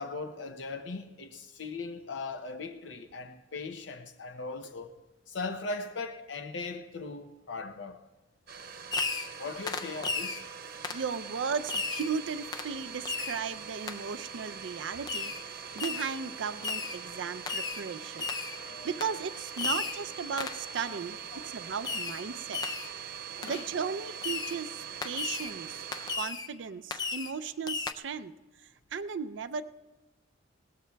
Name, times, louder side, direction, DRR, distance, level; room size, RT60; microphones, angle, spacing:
voice 1, 0.0-4.9 5.3-8.0 9.4-10.4 18.5-18.9 20.9-21.0 21.3-21.7 23.3-23.6, left 3 dB, 65° left, 0.6 m, -39 dB
Domestic sounds home sounds, 8.5-26.2, right 7 dB, 55° right, 0.9 m, -43 dB
Fireworks, 8.9-9.4 9.7-10.4 10.8-11.1 11.7-12.1 12.5-12.7 13.1-13.4 13.9-14.0 15.1-15.4 15.8-16.2 16.6-17.0 17.5-17.8 18.2-18.6 19.0-19.2 19.6-20.0 20.4-20.7 21.8-22.2 22.5-22.9 23.4-23.5 24.2-24.6 25.0-25.5 25.9-26.5 26.9-27.4 27.7-27.9, left 4 dB, 20° left, 0.4 m, -34 dB
voice 2, 10.9-18.3 18.8-22.6 23.4-25.9 26.1-29.6, right 6 dB, 70° right, 0.5 m, -36 dB
21.0 x 17.5 x 2.3 m
head